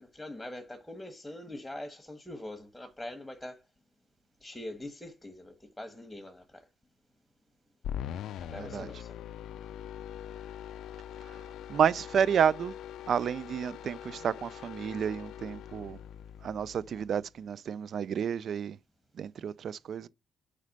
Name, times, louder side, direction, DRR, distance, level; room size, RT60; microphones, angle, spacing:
voice 1, 0.0-3.6 4.4-6.6 8.4-9.2, left 1 dB, 5° left, 1.2 m, -43 dB
sound 1, 7.8-17.2, left 10 dB, 80° left, 0.3 m, -42 dB
voice 2, 8.6-8.9 11.2-11.3 11.7-12.7 13.1-16.0 16.4-18.8 19.2-20.1, right 8 dB, 60° right, 0.4 m, -30 dB
5.0 x 4.2 x 5.2 m
cardioid pair, 90°, 0 cm